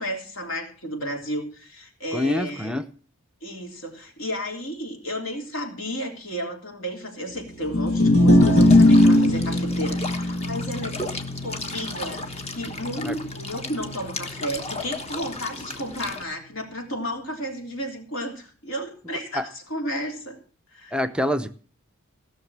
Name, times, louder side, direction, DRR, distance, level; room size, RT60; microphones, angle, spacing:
voice 1, 0.0-2.7 3.4-11.0 11.4-20.4 20.7-21.0, equal, 65° left, 2 dB, 3.5 m, -33 dB
voice 2, 2.1-2.9 13.0-13.2 19.3-19.4 20.9-21.5, left 1 dB, 5° right, 12 dB, 0.6 m, -25 dB
sound 1, 7.6-14.0, left 1 dB, 85° left, 1.7 m, -20 dB
sound 2, 8.4-16.2, left 2 dB, 30° left, 1.3 m, -35 dB
16.5 x 6.5 x 7.4 m, 0.42 s
head